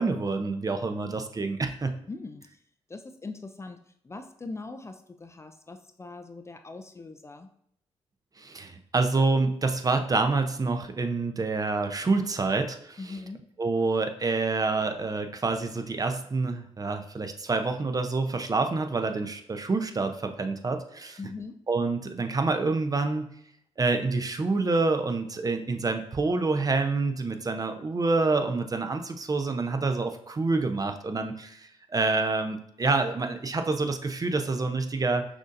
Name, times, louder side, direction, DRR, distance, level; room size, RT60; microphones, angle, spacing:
voice 1, 0.0-2.0 8.4-13.1 13.6-21.2 21.7-23.3 23.8-35.3, right 3 dB, 30° right, 7 dB, 0.6 m, -27 dB
voice 2, 2.1-2.6 2.9-7.5 13.0-13.5 21.2-21.6, left 3 dB, 25° left, 7 dB, 0.4 m, -41 dB
6.0 x 2.7 x 2.5 m, 0.68 s
supercardioid pair, 60°, 12 cm